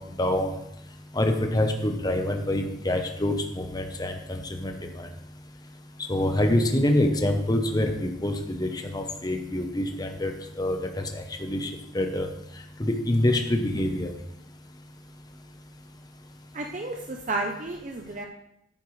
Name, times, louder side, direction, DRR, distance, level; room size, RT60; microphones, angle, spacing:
voice 1, 0.2-0.5 1.1-5.1 6.1-10.3 10.6-11.7 11.9-12.3 12.8-14.1, left 1 dB, 20° left, 5 dB, 0.9 m, -26 dB
voice 2, 16.5-18.3, right 2 dB, 40° right, 2 dB, 0.7 m, -32 dB
11.0 x 9.2 x 3.2 m, 0.82 s
head